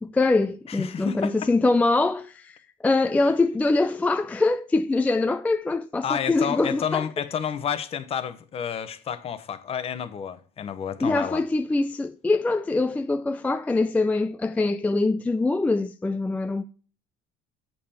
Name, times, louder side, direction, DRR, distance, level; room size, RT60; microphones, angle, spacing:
voice 1, 0.0-7.0 11.0-16.7, left 3 dB, 10° left, 0.3 m, -23 dB
voice 2, 0.7-1.5 3.2-3.3 6.0-11.4, left 8 dB, 40° left, 0.8 m, -30 dB
8.4 x 5.5 x 4.2 m
cardioid pair, 115°, 15 cm